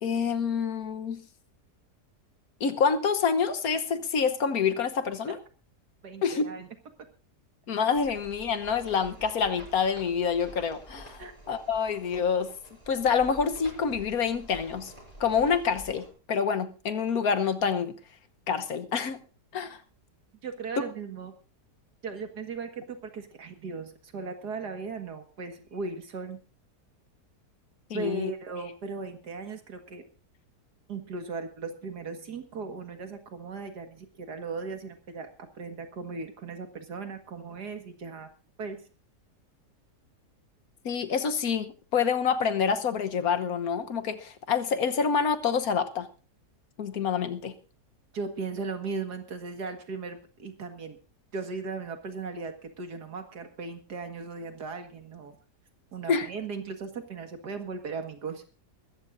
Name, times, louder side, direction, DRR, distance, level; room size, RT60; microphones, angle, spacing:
voice 1, 0.0-1.2 2.6-5.4 6.2-6.4 7.7-12.5 12.9-14.9 15.2-18.0 18.5-19.2 19.5-19.8 27.9-28.3 40.8-46.1 46.8-47.5 56.1-56.3, left 6 dB, 65° left, 1.5 m, -27 dB
voice 2, 6.0-6.7 11.2-11.3 20.4-21.3 22.0-26.4 27.9-30.0 30.9-35.3 35.6-38.3 38.6-38.8 48.1-51.0 51.3-55.4 55.9-58.4, right 4 dB, 75° right, 2.3 m, -37 dB
sound 1, 7.9-16.1, equal, 20° right, 6.7 m, -48 dB
22.5 x 14.0 x 2.6 m
omnidirectional pair, 1.8 m